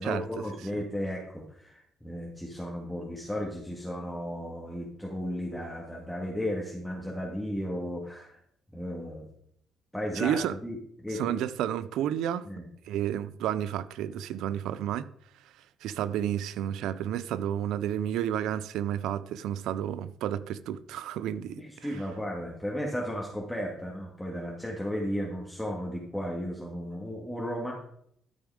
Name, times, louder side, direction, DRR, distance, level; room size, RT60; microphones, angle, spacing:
voice 1, 0.0-8.4 8.7-9.3 9.9-10.8 11.0-11.4 12.5-12.7 21.6-27.7, equal, 5° left, 1.9 m, -34 dB
voice 2, 10.1-10.6 11.1-12.5 12.8-15.1 15.8-21.9, right 10 dB, 90° right, 0.5 m, -31 dB
12.5 x 5.3 x 4.9 m
cardioid pair, 90°, 0 cm